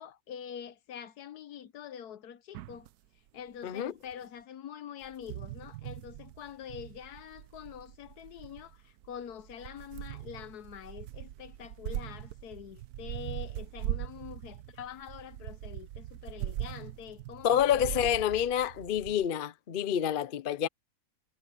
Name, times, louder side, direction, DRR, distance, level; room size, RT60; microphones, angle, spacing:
voice 1, 0.0-2.9 3.3-18.0, left 9 dB, 80° left, 1.3 m, -45 dB
sound 1, 2.5-2.9 4.1-4.2 5.0-19.3, right 13 dB, 85° right, 1.1 m, -41 dB
voice 2, 3.6-3.9 17.4-20.7, left 10 dB, 50° left, 0.6 m, -28 dB
omnidirectional pair, 1.6 m